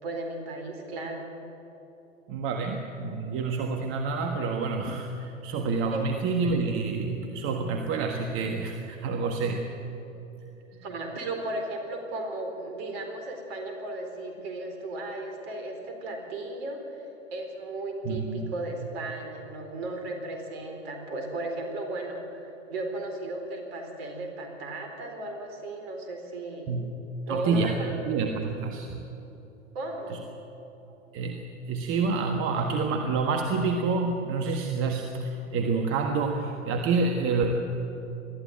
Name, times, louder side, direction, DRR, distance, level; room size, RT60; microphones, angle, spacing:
voice 1, 0.0-1.3 5.9-6.1 10.8-17.1 17.3-26.7 27.3-28.0 29.7-30.2, right 2 dB, 50° right, 4 dB, 4.2 m, -35 dB
voice 2, 2.3-9.6 18.0-18.5 26.7-27.0 27.3-27.7 28.1-28.9 30.1-30.2 31.1-37.5, right 4 dB, 35° right, 3 dB, 1.6 m, -28 dB
20.5 x 14.0 x 9.2 m, 3.0 s
figure-of-eight pair, 105°, 39 cm